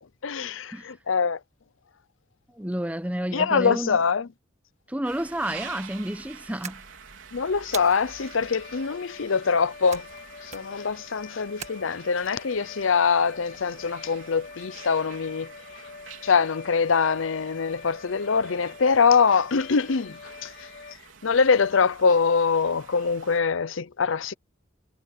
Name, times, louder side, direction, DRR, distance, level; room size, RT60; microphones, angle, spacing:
voice 1, 0.2-1.4 3.3-4.3 7.3-10.0 10.4-15.5 16.2-20.5 21.2-24.3, left 5 dB, 75° left, 0.6 m, -23 dB
voice 2, 2.6-4.0 4.9-6.8, right 1 dB, 5° right, 0.9 m, -30 dB
sound 1, 5.0-23.4, right 6 dB, 75° right, 4.1 m, -48 dB
sound 2, 6.6-7.2 7.7-8.3 9.9-10.2 10.5-10.9 11.6-12.3, right 7 dB, 35° right, 1.7 m, -40 dB
sound 3, 7.8-21.0, left 5 dB, 50° left, 3.0 m, -45 dB
head